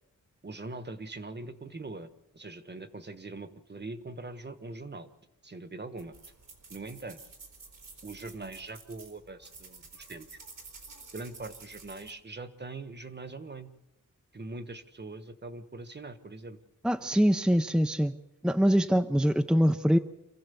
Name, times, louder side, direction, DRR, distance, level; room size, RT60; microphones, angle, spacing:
voice 1, 0.4-5.1 5.4-6.1 6.7-7.2 8.0-10.3 11.1-13.7 14.3-16.6, right 3 dB, 35° right, 10 dB, 1.4 m, -42 dB
sound 1, 6.0-12.1, right 4 dB, 90° right, 4.0 m, -51 dB
voice 2, 16.8-18.1 18.4-20.0, equal, ahead, 7 dB, 0.7 m, -24 dB
27.0 x 15.5 x 7.0 m, 0.92 s
wide cardioid pair, 105°, 31 cm